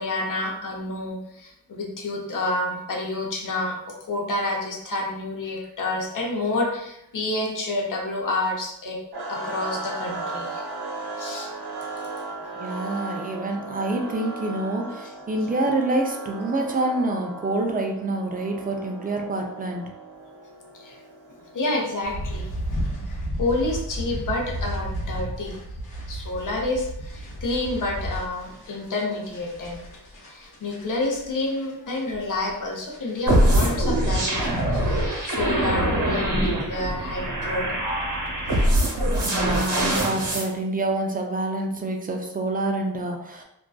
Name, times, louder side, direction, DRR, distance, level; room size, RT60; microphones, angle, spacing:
voice 1, 0.0-9.0 9.3-10.7 11.2-11.5 20.7-21.0 21.5-22.5 23.1-23.2 23.4-25.6 26.1-29.8 30.2-35.0 35.2-37.7, left 2 dB, 55° left, -1 dB, 0.7 m, -29 dB
sound 1, 9.1-23.2, right 3 dB, 75° right, 0.7 m, -37 dB
voice 2, 12.5-19.8 39.2-43.4, right 2 dB, 25° right, 2 dB, 0.4 m, -27 dB
sound 2, 22.0-35.4, right 1 dB, 80° left, 0.9 m, -34 dB
sound 3, 33.3-40.5, right 1 dB, 55° right, 1.0 m, -23 dB
2.6 x 2.2 x 2.3 m, 0.80 s
cardioid pair, 75°, 38 cm